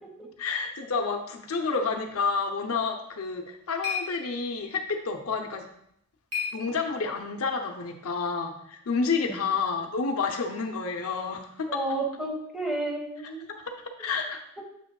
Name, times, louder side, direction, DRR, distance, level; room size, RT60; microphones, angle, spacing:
voice 1, 0.4-5.6 6.5-11.8 13.5-14.4, left 4 dB, 85° left, 4 dB, 0.7 m, -30 dB
sound 1, 3.1-7.3, left 6 dB, 85° right, 2.3 m, -38 dB
voice 2, 11.7-13.5, right 2 dB, ahead, -2 dB, 1.5 m, -31 dB
7.3 x 5.8 x 2.3 m, 0.73 s
head